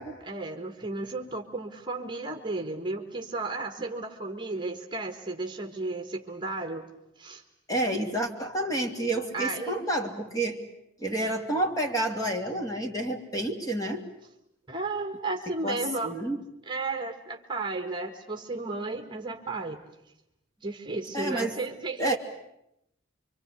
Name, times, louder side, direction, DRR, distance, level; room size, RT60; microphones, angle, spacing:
voice 1, 0.2-6.9 7.2-7.4 9.3-9.9 14.7-16.2 16.6-19.8 20.6-22.2, right 3 dB, 25° right, 5 dB, 1.6 m, -33 dB
voice 2, 7.7-10.6 11.0-14.1 15.6-16.4 21.1-21.6 22.0-22.2, right 1 dB, 20° left, 3 dB, 2.9 m, -29 dB
26.5 x 25.0 x 8.3 m, 0.81 s
head